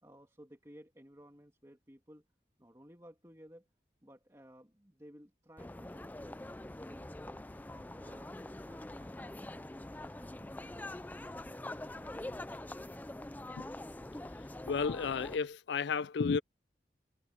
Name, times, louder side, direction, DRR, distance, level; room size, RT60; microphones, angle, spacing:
voice 1, 0.0-2.2 2.6-3.7 4.0-6.2 6.7-8.4 8.6-9.7 10.2-11.7 12.0-13.0, equal, 15° right, 2.5 m, -58 dB
sound 1, 5.6-15.4, left 1 dB, 10° left, 0.3 m, -44 dB
voice 2, 14.7-16.4, left 5 dB, 80° left, 0.4 m, -32 dB
head